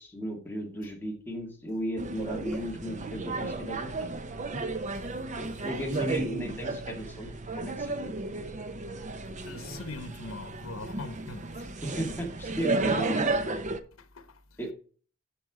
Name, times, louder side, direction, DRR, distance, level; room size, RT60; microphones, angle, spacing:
voice 1, 0.0-4.2 5.4-8.1 11.8-13.3 14.6-14.7, right 1 dB, 10° left, 2.0 m, -35 dB
sound 1, 2.0-13.8, right 3 dB, 35° right, 0.8 m, -33 dB
voice 2, 9.4-11.6 12.6-13.3 14.0-14.6, left 3 dB, 85° left, 1.0 m, -43 dB
12.0 x 4.5 x 4.9 m
head